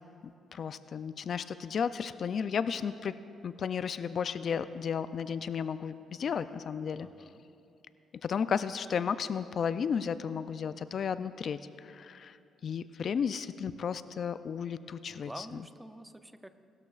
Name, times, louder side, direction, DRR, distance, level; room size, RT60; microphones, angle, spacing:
voice 1, 0.2-3.2 3.4-7.1 8.2-12.4 12.6-15.6, left 7 dB, 55° left, 13 dB, 0.3 m, -33 dB
voice 2, 7.0-7.4 15.1-16.5, right 1 dB, 10° right, 10 dB, 0.5 m, -47 dB
19.0 x 13.0 x 2.4 m, 2.7 s
cardioid pair, 90°, 0 cm